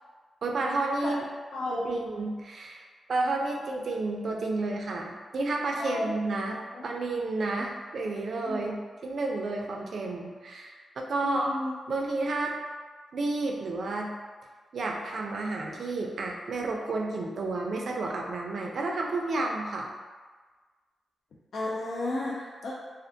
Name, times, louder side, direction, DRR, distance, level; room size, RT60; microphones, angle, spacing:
voice 1, 0.4-1.2 1.7-6.6 6.8-8.8 9.0-11.5 11.9-12.6 13.1-14.1 14.7-19.9, right 2 dB, 65° right, 0 dB, 0.3 m, -31 dB
voice 2, 1.5-2.0 5.8-6.1 6.5-6.9 8.5-8.8 11.2-11.7 21.5-22.7, left 2 dB, 75° left, -5 dB, 0.3 m, -33 dB
2.4 x 2.1 x 2.6 m, 1.4 s
cardioid pair, 75°, 0 cm